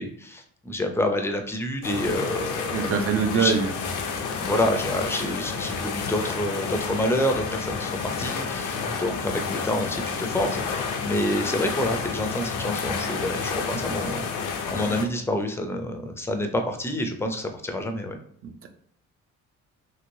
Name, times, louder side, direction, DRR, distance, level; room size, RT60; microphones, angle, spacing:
voice 1, 0.0-2.9 3.3-3.5 4.4-14.3 14.7-18.2, left 1 dB, 10° left, 5 dB, 0.4 m, -28 dB
sound 1, 1.8-15.1, left 5 dB, 90° left, 0.6 m, -30 dB
voice 2, 2.7-3.7 18.4-18.7, right 6 dB, 45° right, 7 dB, 0.5 m, -24 dB
3.0 x 2.9 x 2.6 m, 0.62 s
cardioid pair, 90°, 30 cm